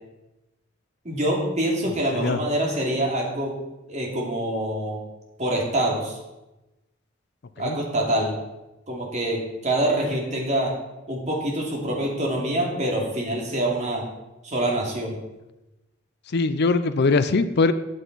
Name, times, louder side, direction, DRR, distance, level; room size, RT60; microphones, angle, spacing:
voice 1, 1.0-3.6 3.9-5.0 5.4-6.2 7.6-8.4 8.9-10.7 11.1-14.1 14.4-15.2, right 1 dB, 35° right, -1 dB, 2.7 m, -25 dB
voice 2, 16.3-17.7, left 3 dB, 60° left, 12 dB, 0.5 m, -21 dB
12.5 x 8.1 x 4.1 m, 0.99 s
head